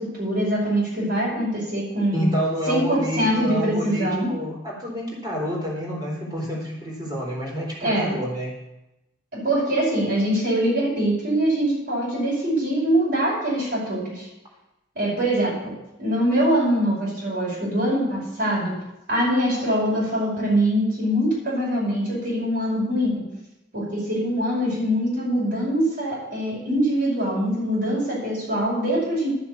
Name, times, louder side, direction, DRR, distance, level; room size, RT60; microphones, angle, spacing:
voice 1, 0.0-2.2 2.7-4.4 7.8-8.2 9.3-14.3 15.0-15.7 16.0-18.7 19.1-23.3 23.7-29.3, right 1 dB, 55° right, -7 dB, 5.5 m, -23 dB
voice 2, 2.1-8.6, equal, 20° right, -2 dB, 3.9 m, -28 dB
12.5 x 7.2 x 7.1 m, 0.94 s
head